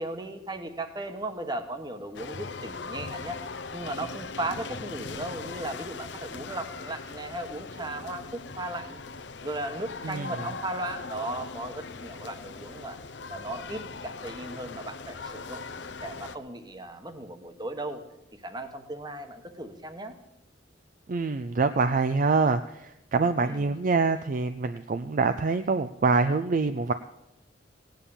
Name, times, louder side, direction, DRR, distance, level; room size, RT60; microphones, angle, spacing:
voice 1, 0.0-9.0 9.4-13.0 13.3-15.6 16.0-18.0 18.3-20.2 23.4-23.8, right 1 dB, 25° right, 8 dB, 1.2 m, -36 dB
sound 1, 2.1-16.4, left 4 dB, 70° left, 0.7 m, -40 dB
voice 2, 10.0-10.4 21.1-26.9, right 4 dB, 45° right, 10 dB, 0.4 m, -25 dB
17.0 x 9.1 x 7.1 m, 0.89 s
head